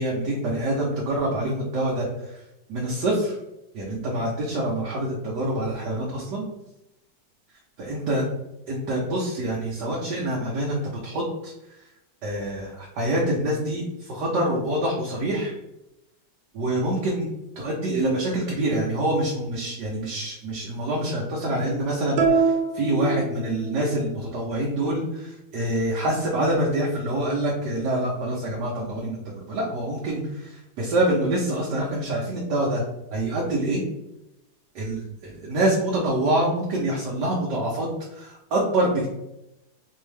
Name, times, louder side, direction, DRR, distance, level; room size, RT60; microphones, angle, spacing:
voice 1, 0.0-2.4 2.7-3.4 3.7-6.4 7.8-8.2 8.7-11.5 12.2-15.5 16.5-17.3 17.6-29.2 29.5-32.8 33.1-33.8 34.7-39.1, right 1 dB, 70° right, -4 dB, 1.4 m, -26 dB
sound 1, 22.2-24.0, right 4 dB, 90° right, 1.4 m, -24 dB
4.3 x 2.7 x 3.2 m, 0.89 s
omnidirectional pair, 2.0 m